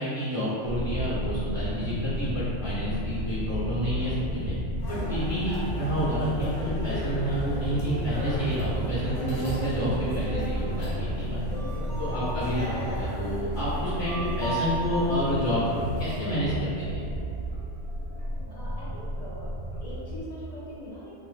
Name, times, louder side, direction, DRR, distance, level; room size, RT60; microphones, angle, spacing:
voice 1, 0.0-4.1 4.5-4.6 4.9-11.4 12.0-17.0, equal, 25° left, -11 dB, 0.9 m, -29 dB
sound 1, 0.6-20.2, equal, 10° right, 0.6 m, -32 dB
sound 2, 4.8-16.3, right 1 dB, 75° left, 0.9 m, -37 dB
voice 2, 9.9-10.3 11.2-12.2 18.5-19.5 19.8-21.1, left 1 dB, 55° left, -8 dB, 0.4 m, -43 dB
2.5 x 2.0 x 2.4 m, 2.5 s
omnidirectional pair, 1.2 m